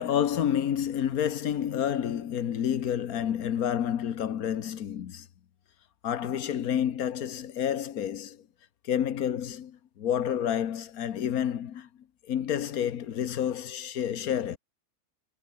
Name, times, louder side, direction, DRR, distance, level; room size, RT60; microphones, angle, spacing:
voice 1, 0.0-5.3 6.0-8.4 8.8-11.9 12.3-14.6, left 9 dB, 75° left, 1.5 m, -29 dB
omnidirectional pair, 1.6 m